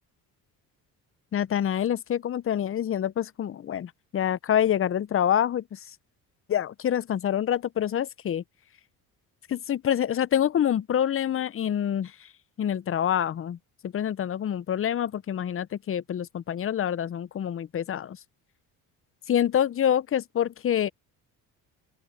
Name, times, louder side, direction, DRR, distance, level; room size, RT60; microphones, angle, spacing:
voice 1, 1.3-5.6 6.5-8.4 9.5-12.1 12.6-13.6 13.8-18.2 19.3-20.9, left 10 dB, 35° left, 0.6 m, -26 dB
open air
cardioid pair, 85°, 38 cm